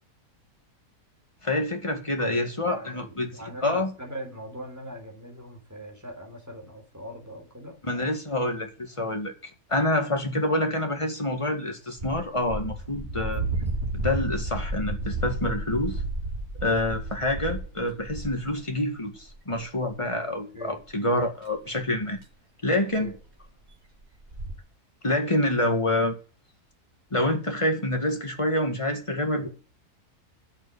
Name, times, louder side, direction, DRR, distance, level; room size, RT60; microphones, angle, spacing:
voice 1, 1.4-3.3 3.6-3.9 7.8-13.4 13.9-16.0 16.6-22.2 22.6-23.1 25.0-26.2 27.1-29.5, left 1 dB, 20° left, 2.0 m, -27 dB
voice 2, 2.2-7.8 20.3-20.8 23.0-23.2 29.2-29.5, equal, 10° right, 3.8 m, -41 dB
sound 1, 12.0-18.5 19.2-19.6 19.9-20.0 20.8-20.9 21.8-21.9 22.2-22.3 23.0-23.2 23.4-23.5 23.7-23.8 24.1-24.5, right 2 dB, 45° right, 3.0 m, -32 dB
11.5 x 6.4 x 8.6 m
omnidirectional pair, 1.6 m